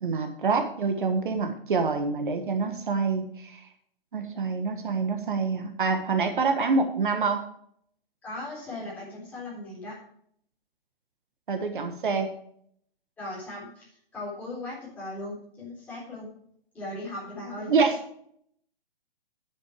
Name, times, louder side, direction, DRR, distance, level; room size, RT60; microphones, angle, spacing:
voice 1, 0.0-3.6 4.1-7.4 11.5-12.3 17.7-18.0, right 4 dB, 60° right, 6 dB, 1.6 m, -26 dB
voice 2, 8.2-10.0 13.2-16.3 16.7-17.7, left 2 dB, 5° left, -8 dB, 4.0 m, -38 dB
10.0 x 8.3 x 4.8 m, 0.65 s
hypercardioid pair, 175°, 29 cm